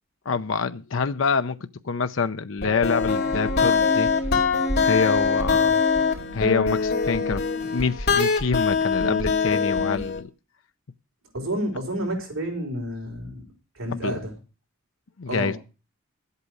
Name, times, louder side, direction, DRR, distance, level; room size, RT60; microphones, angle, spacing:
voice 1, 0.3-1.6 1.8-4.1 4.8-5.8 6.3-10.3 13.9-14.2 15.2-15.6, left 5 dB, 65° left, 0.6 m, -26 dB
sound 1, 2.6-10.2, left 5 dB, 50° left, 2.9 m, -23 dB
voice 2, 11.3-13.4 13.8-14.3 15.3-15.5, right 1 dB, 90° right, 4.6 m, -29 dB
12.0 x 8.4 x 6.4 m
head